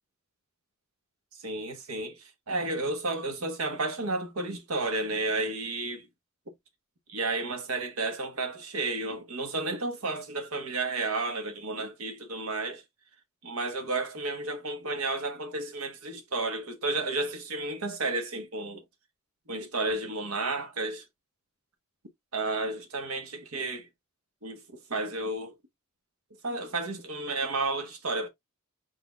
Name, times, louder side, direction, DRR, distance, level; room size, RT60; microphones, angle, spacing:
voice 1, 1.4-2.1 2.5-6.1 7.1-12.8 13.4-18.8 19.5-21.0 22.3-23.9 24.4-24.6 24.9-25.5 26.4-28.3, right 2 dB, 80° right, 1.2 m, -32 dB
4.6 x 4.1 x 2.3 m
head